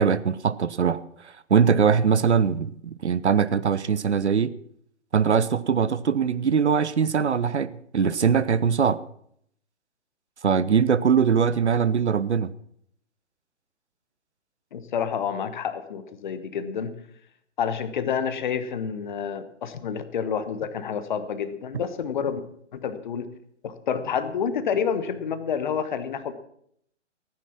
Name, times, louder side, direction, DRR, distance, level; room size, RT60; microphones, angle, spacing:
voice 1, 0.0-4.5 5.1-9.0 10.4-12.5, right 6 dB, 65° right, 0.7 m, -22 dB
voice 2, 14.7-16.9 17.6-22.4 22.7-23.3 23.6-26.3, left 7 dB, 40° left, 1.2 m, -29 dB
15.0 x 9.8 x 5.9 m
figure-of-eight pair, 125°, 36 cm